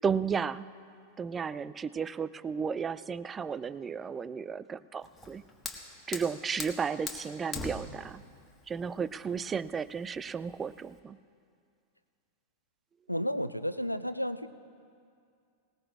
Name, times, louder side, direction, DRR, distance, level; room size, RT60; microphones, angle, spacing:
voice 1, 0.0-0.7 1.2-5.4 6.1-8.2 8.7-11.2, right 6 dB, 20° right, 16 dB, 0.3 m, -33 dB
Fire, 5.0-11.0, left 4 dB, 15° left, 1.5 m, -43 dB
voice 2, 13.1-14.5, equal, 90° left, 13 dB, 0.4 m, -32 dB
19.0 x 18.5 x 2.5 m, 2.3 s
figure-of-eight pair, 90°, 0 cm